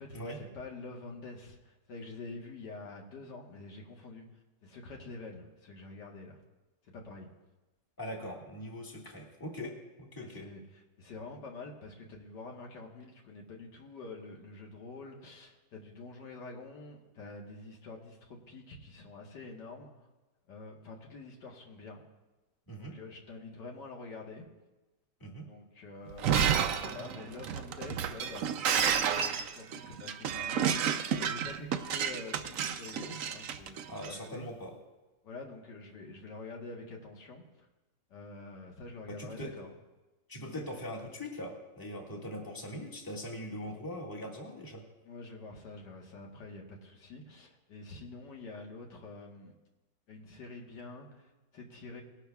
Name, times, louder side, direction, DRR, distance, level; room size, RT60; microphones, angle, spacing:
voice 1, 0.0-4.3 4.6-6.4 6.8-7.3 10.2-19.9 20.5-22.0 22.8-24.5 25.5-34.5 35.2-37.7 38.1-39.7 40.5-40.7 45.1-49.5 50.1-52.0, left 3 dB, 80° left, 0 dB, 2.0 m, -47 dB
voice 2, 8.0-10.5 22.7-22.9 25.2-25.5 33.9-34.7 39.1-39.5 40.3-44.8, equal, 10° left, -2 dB, 1.8 m, -41 dB
Shatter, 26.1-34.1, right 8 dB, 65° right, 0.9 m, -31 dB
20.0 x 11.5 x 2.3 m, 1.1 s
omnidirectional pair, 1.9 m